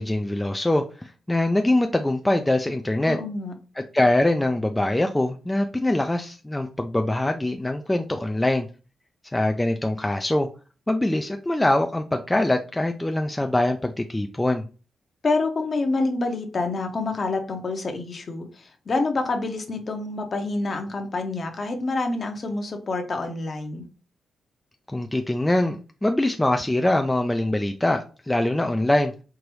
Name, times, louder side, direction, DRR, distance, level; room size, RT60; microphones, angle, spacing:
voice 1, 0.0-3.2 3.8-8.7 9.3-10.5 10.9-14.6 24.9-29.1, left 1 dB, 10° left, 4 dB, 0.3 m, -23 dB
voice 2, 3.1-3.5 15.2-23.8, left 3 dB, 40° left, 5 dB, 0.8 m, -27 dB
4.6 x 2.6 x 3.0 m, 0.35 s
cardioid pair, 120°, 0 cm